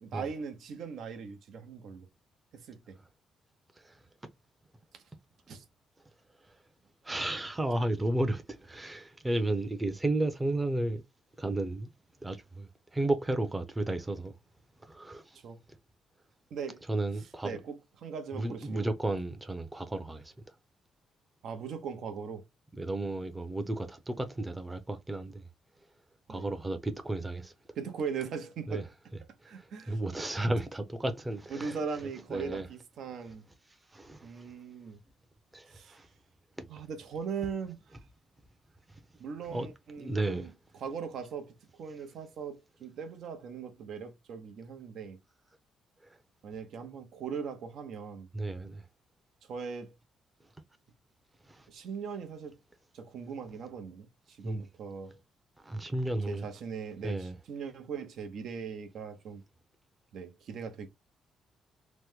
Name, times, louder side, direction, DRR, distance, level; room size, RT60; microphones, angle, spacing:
voice 1, 0.0-2.1 2.5-3.0 5.5-5.6 15.4-15.6 16.5-16.8 17.4-18.9 21.4-22.4 26.3-26.5 27.8-28.9 29.4-30.0 31.5-33.4 34.2-35.0 35.7-36.0 36.7-37.8 39.2-40.5 40.8-45.2 46.4-48.3 49.5-49.9 51.7-52.5 52.9-55.2 56.3-59.4 60.1-60.9, right 6 dB, 70° right, 0.7 m, -39 dB
voice 2, 7.0-11.0 11.4-11.9 12.2-14.3 14.8-15.4 16.9-17.6 18.3-20.3 22.7-25.4 26.3-27.5 28.7-28.8 29.6-31.8 32.3-32.7 33.9-34.4 35.5-36.1 39.5-39.7 40.0-40.5 48.3-48.8 51.5-51.6 54.4-54.6 55.6-56.5 57.0-57.3, right 2 dB, 15° right, 0.6 m, -33 dB
3.0 x 2.1 x 3.5 m
cardioid pair, 90°, 0 cm